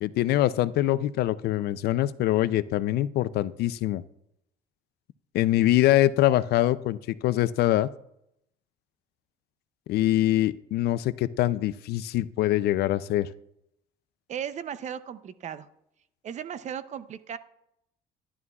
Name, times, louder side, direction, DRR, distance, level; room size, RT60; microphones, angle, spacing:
voice 1, 0.0-4.0 5.3-7.9 9.9-13.3, left 14 dB, 70° left, 16 dB, 0.4 m, -24 dB
voice 2, 14.3-15.7 16.2-17.4, right 8 dB, 45° right, 13 dB, 0.6 m, -36 dB
11.0 x 11.0 x 2.3 m, 0.78 s
cardioid pair, 110°, 17 cm